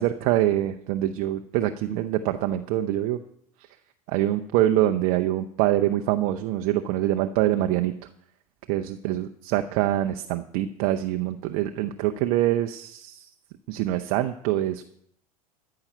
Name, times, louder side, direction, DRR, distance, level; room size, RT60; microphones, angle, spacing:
voice 1, 0.0-3.2 4.1-7.9 8.7-13.2 13.7-14.9, right 13 dB, 45° right, 6 dB, 0.7 m, -25 dB
14.5 x 5.8 x 9.1 m, 0.70 s
figure-of-eight pair, 80°, 19 cm